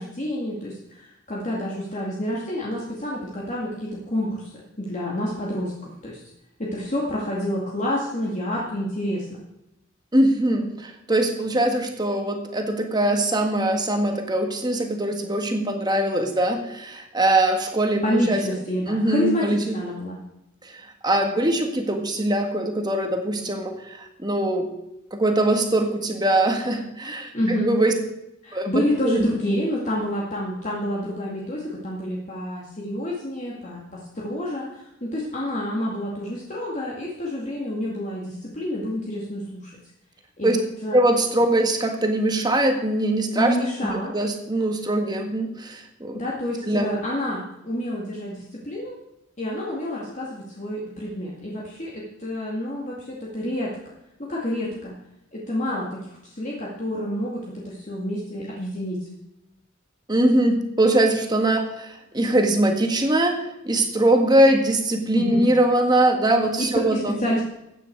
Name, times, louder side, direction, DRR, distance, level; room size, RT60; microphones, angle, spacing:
voice 1, 0.0-6.2 6.6-9.3 18.0-20.2 27.3-27.7 28.4-39.8 40.4-41.0 43.3-44.1 46.1-49.0 49.4-53.7 54.2-54.9 55.3-59.1 65.1-65.4 66.6-67.4, left 1 dB, 35° left, -4 dB, 2.2 m, -28 dB
voice 2, 10.1-18.4 18.9-19.8 20.7-24.7 25.1-27.9 28.5-29.2 40.4-40.6 40.9-43.5 44.1-46.2 46.7-46.9 60.1-67.2, right 1 dB, 20° right, 4 dB, 1.6 m, -22 dB
15.0 x 9.2 x 4.7 m, 0.88 s
head